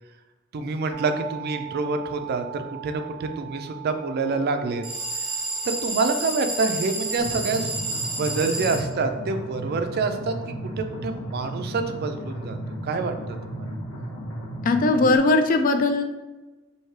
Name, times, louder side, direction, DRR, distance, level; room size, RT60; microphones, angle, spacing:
voice 1, 0.5-4.8 5.6-7.7 8.2-10.4 10.8-12.6 12.8-13.7, right 3 dB, 50° right, 7 dB, 0.4 m, -27 dB
sound 1, 0.9-10.7, right 14 dB, 15° right, 0.9 m, -43 dB
sound 2, 4.8-8.8, right 2 dB, 30° right, 1.4 m, -30 dB
sound 3, 7.2-15.2, right 1 dB, 70° left, 1.1 m, -34 dB
voice 2, 14.6-16.0, left 2 dB, 40° left, 7 dB, 0.3 m, -19 dB
3.1 x 2.7 x 4.5 m, 1.2 s
head